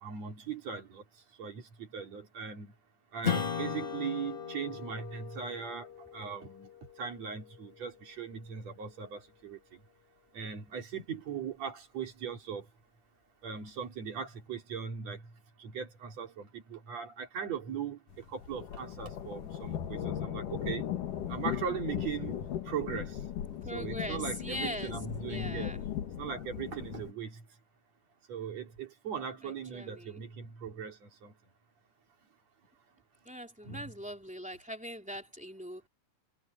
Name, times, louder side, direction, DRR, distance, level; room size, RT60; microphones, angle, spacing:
voice 1, 0.0-1.0 1.4-2.7 3.1-6.7 7.0-9.8 10.3-12.7 13.4-15.3 15.6-20.9 21.3-22.4 22.6-23.2 23.7-25.8 26.2-27.4 28.3-31.3 33.6-33.9, right 7 dB, 55° right, 3.8 m, -39 dB
Strum, 3.2-8.2, left 7 dB, 55° left, 0.6 m, -38 dB
sound 1, 18.1-27.1, left 10 dB, 90° left, 3.3 m, -37 dB
voice 2, 23.6-25.0 25.3-25.8 29.4-30.2 33.2-35.8, equal, ahead, 2.6 m, -41 dB
omnidirectional pair, 3.6 m